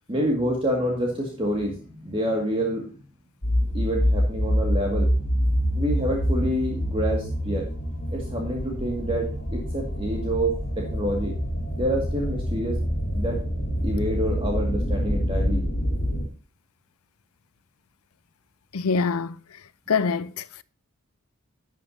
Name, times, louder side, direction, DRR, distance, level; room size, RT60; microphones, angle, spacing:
voice 1, 0.1-2.9 3.7-5.1 5.7-7.7 8.1-11.3 11.8-12.8 13.1-13.4 13.8-15.6, equal, 25° right, 2.1 m, -27 dB
sound 1, 3.4-16.3, equal, 55° left, 3.4 m, -26 dB
voice 2, 18.7-19.4 19.9-20.6, left 5 dB, 90° left, 0.6 m, -25 dB
11.5 x 9.2 x 2.8 m
head